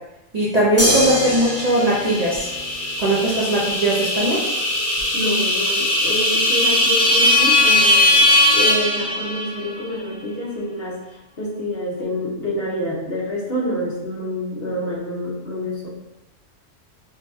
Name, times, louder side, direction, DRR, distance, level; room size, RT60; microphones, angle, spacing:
voice 1, 0.3-2.5 3.0-4.4, right 1 dB, 40° right, -7 dB, 0.6 m, -19 dB
sound 1, 0.8-3.3 5.0-5.1, equal, 15° left, 0.9 m, -24 dB
sound 2, 1.7-9.7, left 1 dB, 80° left, 1.2 m, -19 dB
voice 2, 5.1-15.9, equal, 55° left, -5 dB, 1.1 m, -27 dB
5.0 x 2.2 x 2.7 m, 0.93 s
omnidirectional pair, 1.3 m